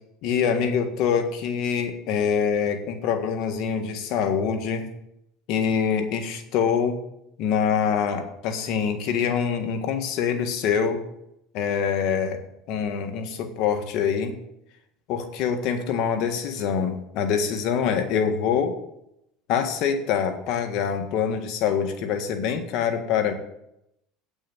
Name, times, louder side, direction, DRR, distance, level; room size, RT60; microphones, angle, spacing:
voice 1, 0.2-4.9 5.5-7.0 7.4-11.0 11.5-12.4 12.7-14.3 15.1-18.7 19.5-23.3, left 7 dB, 60° left, 6 dB, 1.7 m, -25 dB
8.7 x 6.3 x 7.9 m, 0.80 s
supercardioid pair, 120°, 0 cm